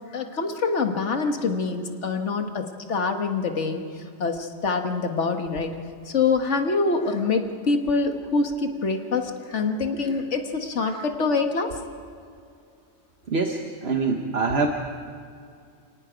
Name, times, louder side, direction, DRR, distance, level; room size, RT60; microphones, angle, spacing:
voice 1, 0.1-3.8 4.2-5.8 6.1-11.7, left 4 dB, 90° left, 5 dB, 1.8 m, -25 dB
voice 2, 13.3-14.7, right 4 dB, 65° right, 3 dB, 1.4 m, -24 dB
28.5 x 18.5 x 5.1 m, 2.3 s
omnidirectional pair, 1.2 m